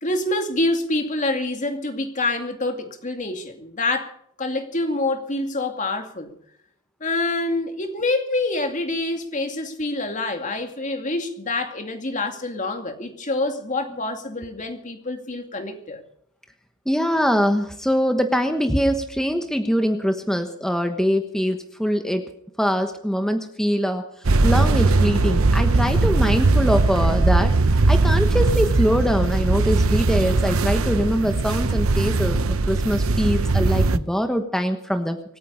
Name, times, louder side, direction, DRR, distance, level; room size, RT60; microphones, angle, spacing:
voice 1, 0.0-4.1 4.4-6.3 7.0-16.0, left 2 dB, 35° left, 2.4 m, -26 dB
voice 2, 16.9-22.3 22.6-24.0 24.4-27.6 27.9-32.4 32.7-35.2, equal, ahead, 1.2 m, -23 dB
sound 1, 24.2-34.0, right 3 dB, 70° right, 0.8 m, -19 dB
26.0 x 9.4 x 5.4 m
head